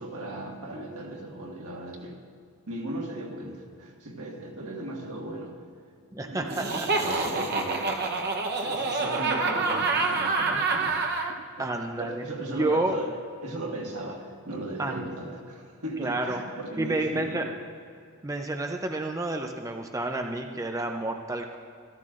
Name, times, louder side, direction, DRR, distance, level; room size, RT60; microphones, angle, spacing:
voice 1, 0.0-2.2 2.7-5.7 6.2-11.0 12.0-17.5, right 1 dB, 90° right, -1 dB, 1.7 m, -37 dB
voice 2, 6.1-7.0 11.6-12.2 12.5-13.0 14.8-15.0 16.0-16.4 16.8-17.4 18.2-21.6, right 2 dB, 15° right, 4 dB, 0.4 m, -30 dB
Laughter, 6.5-11.3, right 3 dB, 45° right, 0.8 m, -27 dB
13.5 x 13.5 x 2.5 m, 2.2 s
head